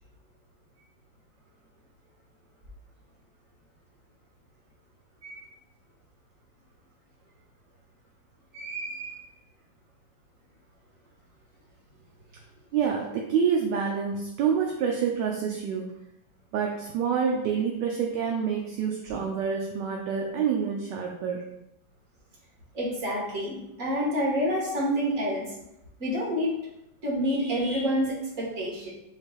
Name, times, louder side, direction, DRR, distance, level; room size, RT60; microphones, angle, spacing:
voice 1, 8.5-9.2 22.7-25.4 26.0-26.5 27.0-28.9, equal, 45° right, -5 dB, 1.7 m, -28 dB
voice 2, 12.7-15.9 16.5-21.4, right 7 dB, 75° right, 0 dB, 1.1 m, -27 dB
6.3 x 3.3 x 2.3 m, 0.85 s
omnidirectional pair, 2.1 m